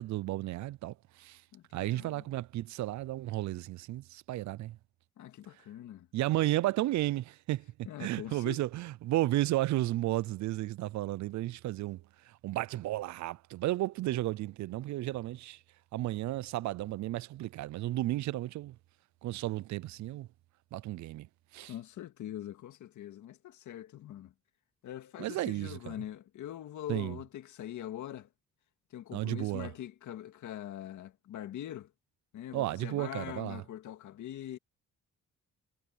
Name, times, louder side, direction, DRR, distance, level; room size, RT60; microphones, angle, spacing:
voice 1, 0.0-1.4 1.7-4.8 6.1-7.6 8.0-12.0 12.4-15.6 15.9-18.7 19.2-20.3 20.7-21.3 21.5-21.7 25.2-25.9 26.9-27.2 29.1-29.7 32.5-33.6, right 16 dB, 70° right, 0.5 m, -33 dB
voice 2, 1.5-2.2 5.2-6.1 7.9-8.6 21.7-24.3 24.8-28.3 28.9-31.9 32.3-34.6, left 12 dB, 75° left, 2.1 m, -43 dB
cardioid pair, 90°, 30 cm